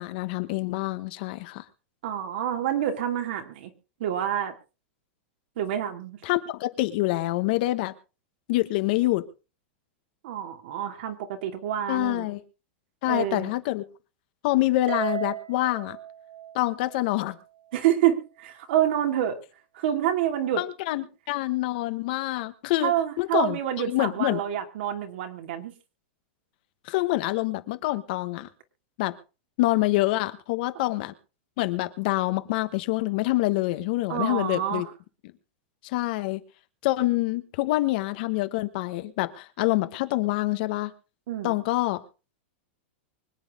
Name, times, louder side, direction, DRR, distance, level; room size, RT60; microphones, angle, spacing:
voice 1, 0.0-1.6 6.2-7.9 8.5-9.2 11.9-12.4 13.0-13.8 14.4-16.0 16.5-17.4 20.6-22.9 23.2-24.4 26.8-28.5 29.0-29.2 29.6-31.1 31.6-34.9 35.8-36.4 36.8-40.9 41.4-42.0, left 18 dB, 50° left, 1.3 m, -26 dB
voice 2, 2.0-3.7 4.0-4.5 5.6-6.2 10.2-12.3 13.0-13.5 17.7-19.4 19.7-20.6 22.8-25.7 34.1-34.9 41.3-41.5, right 11 dB, 60° right, 2.6 m, -27 dB
Harp, 14.9-17.3, right 12 dB, 85° right, 4.0 m, -35 dB
24.5 x 8.9 x 3.7 m
supercardioid pair, 160°, 6 cm